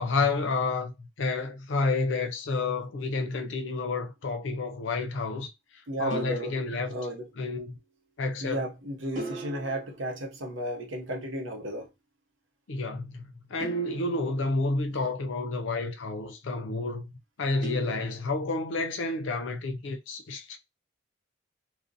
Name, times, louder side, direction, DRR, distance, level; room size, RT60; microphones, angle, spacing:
voice 1, 0.0-5.5 6.0-7.0 7.4-7.8 8.2-8.7 12.7-17.0 17.4-20.6, left 3 dB, 75° left, 0.5 m, -30 dB
sound 1, 3.5-3.9 6.1-7.6 9.2-11.1 13.6-15.3 17.6-18.8, right 2 dB, 40° right, 0.7 m, -42 dB
voice 2, 5.9-6.5 6.9-7.2 8.4-11.9, right 1 dB, 75° right, 0.7 m, -33 dB
2.5 x 2.1 x 2.6 m
head